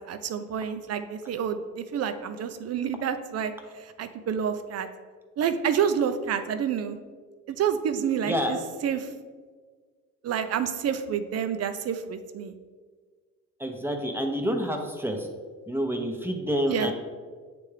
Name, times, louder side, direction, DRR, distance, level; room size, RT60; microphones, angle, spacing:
voice 1, 0.1-3.5 4.0-4.9 5.4-7.0 7.5-8.6 8.8-9.1 10.2-12.5 16.7-16.9, right 8 dB, 55° right, 9 dB, 0.6 m, -28 dB
voice 2, 13.6-15.3 15.7-16.9, equal, 5° right, 2 dB, 0.8 m, -28 dB
8.4 x 3.4 x 3.3 m, 1.5 s
cardioid pair, 90°, 30 cm